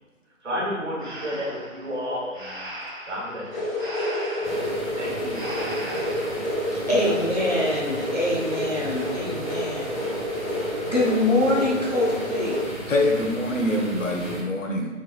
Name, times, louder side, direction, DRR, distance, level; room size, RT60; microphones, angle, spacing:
voice 1, 0.4-2.6 3.1-3.9 4.4-4.7 5.0-5.5 5.8-6.2 7.0-7.2, equal, 60° right, -2 dB, 1.1 m, -32 dB
Breathing, 1.0-6.5, equal, 40° right, 0.6 m, -38 dB
sound 1, 3.5-12.6, left 1 dB, 85° left, 1.3 m, -29 dB
sound 2, 4.4-14.4, right 2 dB, 10° right, 1.0 m, -37 dB
voice 2, 6.9-10.0 10.8-12.6, left 1 dB, 30° left, -5 dB, 0.5 m, -24 dB
voice 3, 12.9-14.9, left 1 dB, 70° left, 0 dB, 0.8 m, -25 dB
4.0 x 3.2 x 2.3 m, 1.4 s
figure-of-eight pair, 160°, 40 cm